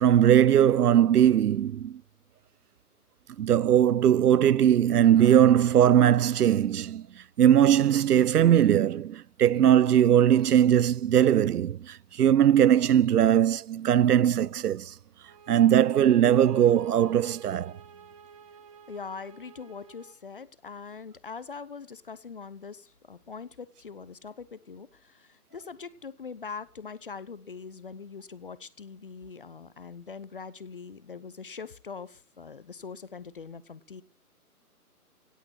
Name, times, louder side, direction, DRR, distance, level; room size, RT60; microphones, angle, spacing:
voice 1, 0.0-2.0 3.4-7.1 7.4-14.9 15.5-17.7, right 10 dB, 80° right, 0.6 m, -20 dB
sound 1, 15.2-20.2, right 6 dB, 20° right, 1.2 m, -51 dB
voice 2, 18.9-34.0, left 5 dB, 35° left, 0.7 m, -42 dB
17.5 x 8.7 x 6.2 m
hypercardioid pair, 155°, 46 cm